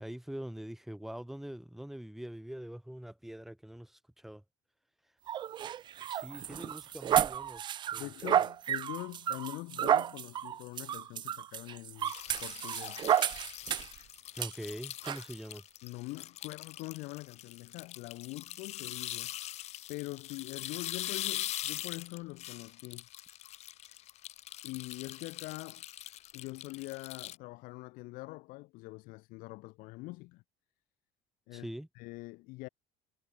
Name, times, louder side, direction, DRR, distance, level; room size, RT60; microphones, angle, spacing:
voice 1, 0.0-4.4 6.1-7.6 7.9-8.5 14.4-15.6 31.5-31.9, equal, ahead, 3.0 m, -43 dB
sound 1, 5.3-14.0 14.4-14.5 15.0-15.2, right 10 dB, 30° right, 0.6 m, -32 dB
voice 2, 8.0-12.1 12.4-13.1 15.8-19.3 19.9-23.1 24.6-25.8 26.3-30.4 31.5-31.7 31.9-32.7, left 23 dB, 70° left, 6.9 m, -44 dB
sound 2, 12.0-27.3, left 13 dB, 45° left, 4.2 m, -42 dB
cardioid pair, 160°, 15 cm